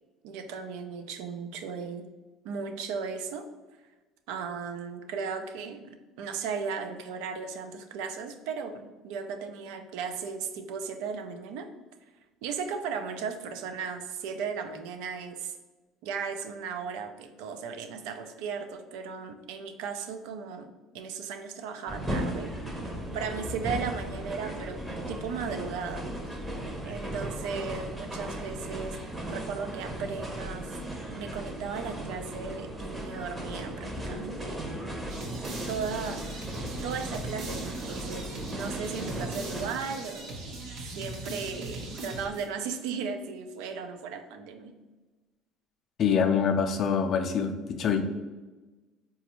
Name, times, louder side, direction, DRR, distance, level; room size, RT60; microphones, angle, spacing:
voice 1, 0.2-2.1 2.4-3.5 4.3-11.7 12.4-15.5 16.0-22.9 23.1-26.1 26.4-26.5 26.8-29.0 29.3-30.8 31.2-34.7 35.7-36.5 36.8-40.4 41.0-44.7, right 5 dB, 85° right, 7 dB, 0.3 m, -36 dB
sound 1, 21.9-39.7, right 1 dB, 15° right, 0.6 m, -36 dB
sound 2, 35.1-42.7, right 2 dB, 65° right, 0.8 m, -40 dB
voice 2, 46.0-48.0, left 6 dB, 50° left, 6 dB, 0.4 m, -25 dB
4.0 x 2.3 x 2.9 m, 1.2 s
cardioid pair, 105°, 0 cm